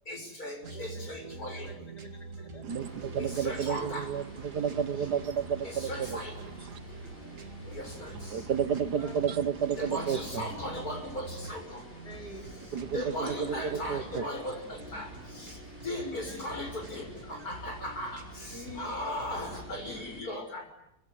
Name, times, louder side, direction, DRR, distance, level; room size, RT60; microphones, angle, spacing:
voice 1, 0.1-1.9 3.2-4.1 5.6-6.4 7.7-8.5 9.8-11.9 12.9-20.7, left 1 dB, 65° left, 4 dB, 7.0 m, -38 dB
sound 1, 0.6-20.0, right 4 dB, 50° right, 2.5 m, -45 dB
voice 2, 1.5-2.9 5.0-5.2 6.4-6.7 8.0-8.4 9.0-9.2 12.0-12.4 13.5-14.6 16.0-16.5 18.5-19.2, left 1 dB, 80° left, 3 dB, 4.7 m, -48 dB
voice 3, 2.6-6.2 6.7-6.8 8.1-10.5 12.7-14.2, right 7 dB, 75° right, 13 dB, 1.9 m, -31 dB
sound 2, 2.7-20.2, left 1 dB, 35° left, 6.7 m, -50 dB
25.0 x 24.0 x 9.6 m, 0.79 s
omnidirectional pair, 1.7 m